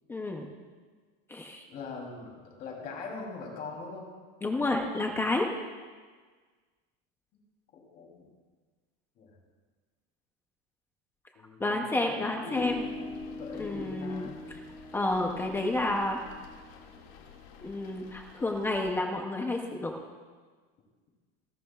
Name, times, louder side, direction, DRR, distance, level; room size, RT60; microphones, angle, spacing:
voice 1, 0.1-0.5 1.3-1.6 4.4-5.5 11.6-12.9 13.6-14.3 14.9-16.2 17.6-19.9, left 2 dB, 5° left, 2 dB, 0.5 m, -30 dB
voice 2, 1.7-4.1 7.7-8.3 9.2-9.3 11.3-12.6 13.3-14.4, left 4 dB, 30° left, -1 dB, 3.0 m, -42 dB
sound 1, 12.5-18.9, left 4 dB, 45° left, 2.0 m, -43 dB
28.0 x 12.0 x 2.3 m, 1.5 s
supercardioid pair, 180°, 30 cm